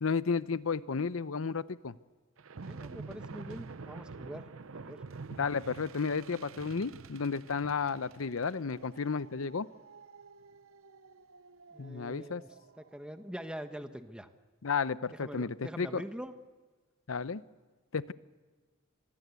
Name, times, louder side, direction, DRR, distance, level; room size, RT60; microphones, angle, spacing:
voice 1, 0.0-1.9 5.4-9.7 11.8-12.4 14.6-16.0 17.1-17.4 17.9-18.1, left 5 dB, 85° left, 16 dB, 0.7 m, -32 dB
sound 1, 2.4-13.0, right 4 dB, 85° right, 0.7 m, -48 dB
voice 2, 2.6-4.5 4.7-5.0 11.7-12.5 12.8-14.3 15.1-16.3, equal, 5° right, 8 dB, 1.1 m, -44 dB
26.0 x 21.0 x 8.3 m, 1.4 s
head